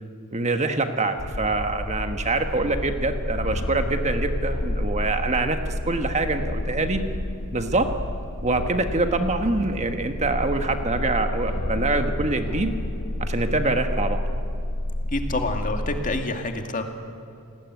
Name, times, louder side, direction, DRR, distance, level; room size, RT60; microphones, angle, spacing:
voice 1, 0.3-7.0 7.5-7.9 8.4-12.7 13.2-14.2, right 3 dB, 30° right, 6 dB, 1.5 m, -25 dB
sound 1, 1.2-16.2, left 1 dB, 75° left, 1.2 m, -29 dB
voice 2, 15.1-16.8, left 2 dB, 35° left, 5 dB, 2.2 m, -27 dB
29.0 x 19.5 x 9.5 m, 2.6 s
head